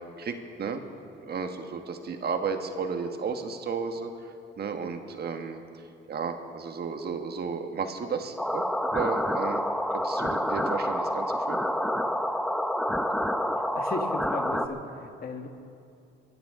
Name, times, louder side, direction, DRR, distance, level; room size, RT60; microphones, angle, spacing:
voice 1, 0.2-0.8 1.3-4.1 4.6-5.6 6.1-8.7 8.9-9.6 9.9-11.6, right 5 dB, 55° right, 6 dB, 1.4 m, -33 dB
sound 1, 8.4-14.7, equal, ahead, 0.8 m, -28 dB
voice 2, 13.7-15.5, left 4 dB, 50° left, 5 dB, 1.5 m, -36 dB
22.5 x 15.0 x 3.7 m, 2.5 s
cardioid pair, 90°, 20 cm